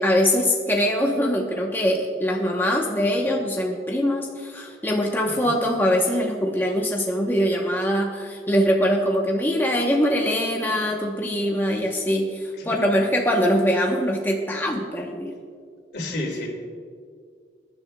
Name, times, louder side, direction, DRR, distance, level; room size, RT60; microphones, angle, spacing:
voice 1, 0.0-15.3, equal, 10° left, 0 dB, 0.8 m, -23 dB
voice 2, 15.9-16.5, left 1 dB, 75° left, 0 dB, 2.5 m, -31 dB
22.0 x 10.5 x 2.2 m, 2.1 s
head